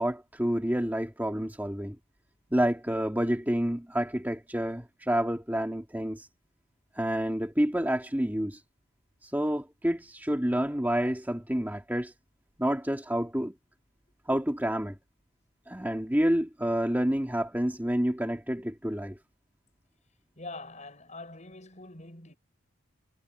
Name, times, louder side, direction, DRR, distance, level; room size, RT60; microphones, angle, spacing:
voice 1, 0.0-2.0 2.5-6.3 7.0-8.6 9.2-12.1 12.6-13.5 14.3-15.0 15.7-19.2, equal, 10° right, 2.3 m, -28 dB
voice 2, 20.4-22.3, left 2 dB, 35° left, 6.7 m, -44 dB
head